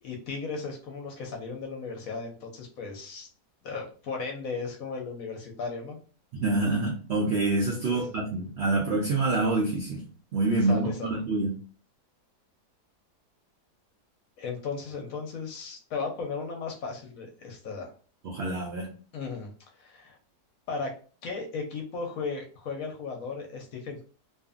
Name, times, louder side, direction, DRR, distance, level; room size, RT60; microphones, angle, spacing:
voice 1, 0.0-3.3 3.6-6.0 7.9-8.2 10.6-11.2 14.4-17.9 19.1-19.5 19.8-20.2 20.7-20.9 21.2-24.0, left 4 dB, 65° left, 2 dB, 0.9 m, -36 dB
voice 2, 6.3-10.0 10.3-11.5 18.2-18.9, right 2 dB, 75° right, 0 dB, 0.6 m, -26 dB
2.6 x 2.5 x 2.3 m, 0.39 s
omnidirectional pair, 1.8 m